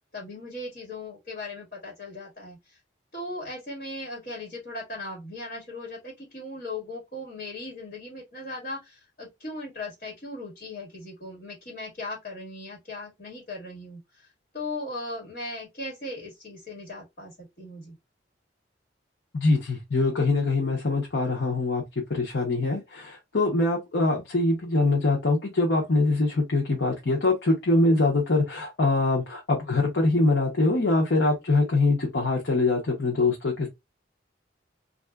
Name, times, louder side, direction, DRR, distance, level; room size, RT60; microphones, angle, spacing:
voice 1, 0.1-2.8 3.1-14.3 14.5-17.9, left 2 dB, 45° left, 1.5 m, -38 dB
voice 2, 19.3-21.8 22.1-33.7, left 2 dB, 70° left, 0.9 m, -23 dB
3.3 x 2.5 x 2.3 m
head